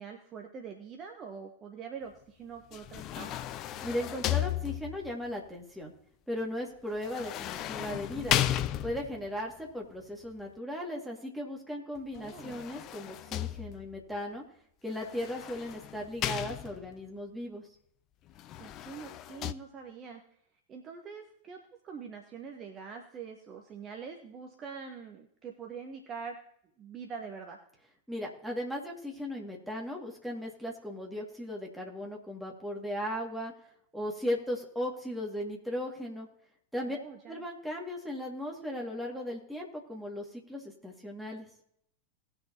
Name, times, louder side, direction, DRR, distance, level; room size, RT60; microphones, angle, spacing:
voice 1, 0.0-3.3 12.1-12.6 18.6-20.2 20.7-26.4 26.8-27.6 36.8-37.4, right 6 dB, 30° right, 3 dB, 1.1 m, -44 dB
sound 1, 2.7-5.1 7.0-9.3 12.1-14.0 15.0-17.0 18.3-19.5, left 12 dB, 35° left, 0.5 m, -34 dB
voice 2, 3.8-5.9 6.3-8.4 8.8-14.4 14.8-17.7 28.1-33.5 33.9-36.3 36.7-37.0 37.3-41.5, left 1 dB, 5° right, -1 dB, 2.3 m, -37 dB
19.0 x 6.5 x 2.9 m, 0.69 s
figure-of-eight pair, 90°, 0 cm